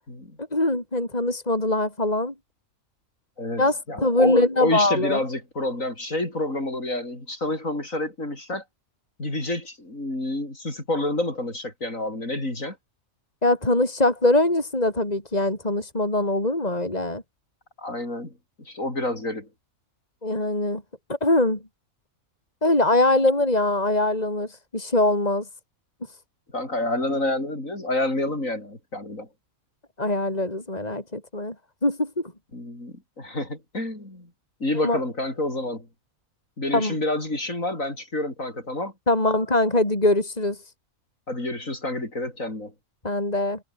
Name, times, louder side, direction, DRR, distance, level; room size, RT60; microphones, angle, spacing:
voice 1, 0.4-2.3 3.6-5.2 13.4-17.2 20.2-20.8 21.1-21.6 22.6-24.5 24.7-25.4 30.0-31.5 31.8-32.3 34.8-35.0 36.7-37.0 39.1-40.6 43.0-43.6, left 2 dB, 25° left, 5.3 m, -22 dB
voice 2, 3.4-8.6 9.2-12.8 17.8-19.5 26.5-29.3 32.5-34.3 34.6-35.9 36.6-38.9 41.3-42.7, left 1 dB, 65° left, 7.3 m, -28 dB
omnidirectional pair, 1.5 m